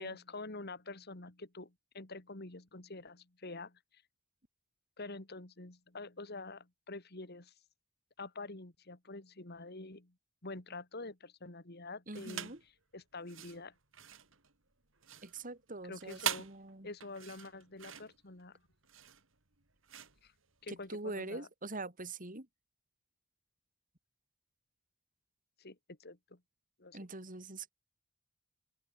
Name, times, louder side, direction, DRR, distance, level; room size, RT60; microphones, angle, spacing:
voice 1, 0.0-4.0 5.0-7.5 8.2-10.1 10.4-12.5 12.9-13.7 15.8-16.5 16.8-18.6 20.2-20.3 20.6-21.5 25.6-26.4 26.8-27.0, left 3 dB, 50° left, 2.5 m, -47 dB
voice 2, 12.1-12.6 15.2-16.9 20.7-22.5 26.9-27.7, right 2 dB, 40° right, 3.6 m, -44 dB
sound 1, 12.1-12.7 13.2-21.0, right 9 dB, 65° right, 3.8 m, -43 dB
open air
head